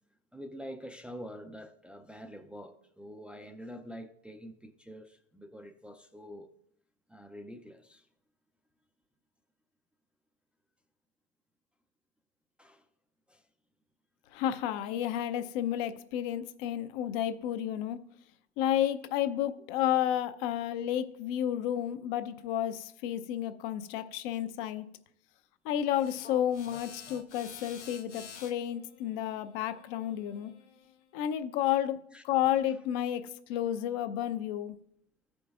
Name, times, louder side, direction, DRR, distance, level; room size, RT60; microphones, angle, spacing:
voice 1, 0.3-6.5 7.1-8.1 12.6-12.9 13.3-13.5 31.6-31.7 32.1-32.2, equal, 5° right, 0.5 m, -46 dB
voice 2, 14.3-18.0 18.6-24.9 25.6-30.5 31.1-34.8, left 11 dB, 55° left, 0.7 m, -31 dB
sound 1, 25.9-31.0, left 6 dB, 85° left, 1.1 m, -50 dB
15.5 x 5.3 x 2.4 m
hypercardioid pair, 90°, 34 cm